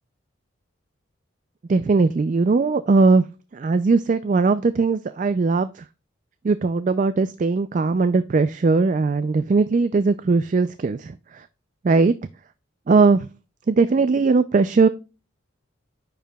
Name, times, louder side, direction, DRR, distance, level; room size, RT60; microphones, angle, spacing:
voice 1, 1.7-3.3 3.5-5.8 6.4-11.5 11.8-12.1 12.9-13.3 13.7-14.9, right 4 dB, 40° right, 12 dB, 0.3 m, -19 dB
10.0 x 4.7 x 2.2 m, 0.31 s
head